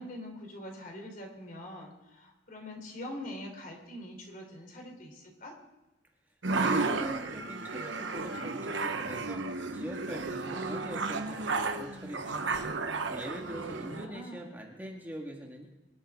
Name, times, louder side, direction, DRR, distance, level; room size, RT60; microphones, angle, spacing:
voice 1, 0.0-5.5 13.5-14.6, left 1 dB, 50° left, 1 dB, 3.4 m, -44 dB
sound 1, 6.4-14.1, right 3 dB, 85° right, 1.1 m, -33 dB
voice 2, 6.5-9.4 9.7-12.7 13.1-15.7, right 1 dB, 10° right, 0 dB, 1.7 m, -42 dB
24.0 x 11.5 x 3.7 m, 1.0 s
head